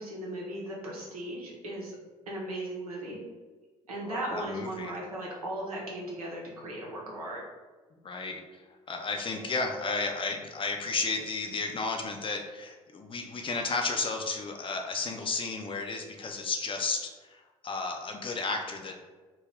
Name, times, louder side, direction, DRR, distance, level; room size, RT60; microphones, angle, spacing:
voice 1, 0.0-2.0 2.3-3.2 3.9-7.4, right 1 dB, 85° right, -3 dB, 0.7 m, -37 dB
voice 2, 4.0-5.0 8.0-8.6 8.9-19.0, left 3 dB, 30° left, 3 dB, 0.5 m, -33 dB
2.7 x 2.3 x 3.3 m, 1.3 s
figure-of-eight pair, 50°, 18 cm